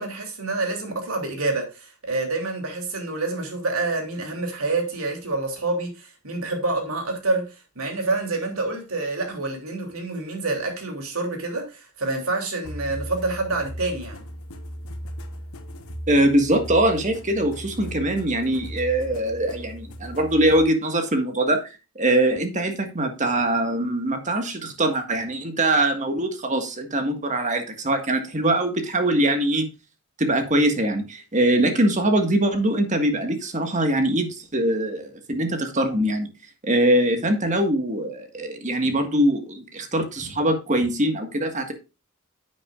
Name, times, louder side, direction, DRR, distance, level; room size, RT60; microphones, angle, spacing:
voice 1, 0.0-14.2, right 2 dB, 70° right, 3.1 m, -27 dB
sound 1, 12.6-20.7, equal, 75° left, 1.2 m, -37 dB
voice 2, 16.1-21.7 21.9-29.7 30.2-36.3 36.6-41.7, right 1 dB, 35° right, 1.7 m, -22 dB
10.0 x 8.2 x 2.5 m
head